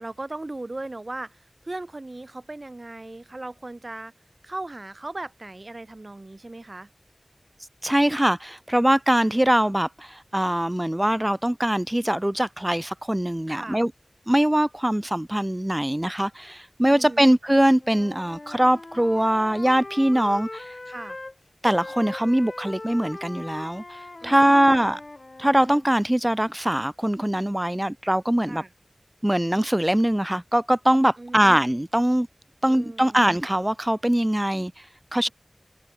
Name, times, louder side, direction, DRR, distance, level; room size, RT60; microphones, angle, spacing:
voice 1, 0.0-4.1 4.4-6.9 13.5-13.8 16.9-17.3 20.9-21.2 24.2-25.0 28.4-28.7 31.2-31.6 32.7-33.3, right 2 dB, 50° right, 6.1 m, -38 dB
voice 2, 7.8-13.9 14.3-20.8 21.6-25.0 25.4-28.6 29.2-32.3 32.6-35.3, right 1 dB, 15° right, 0.4 m, -22 dB
Wind instrument woodwind instrument, 17.8-21.3 21.6-25.9, left 2 dB, 55° left, 6.4 m, -40 dB
wide cardioid pair, 45°, 0 cm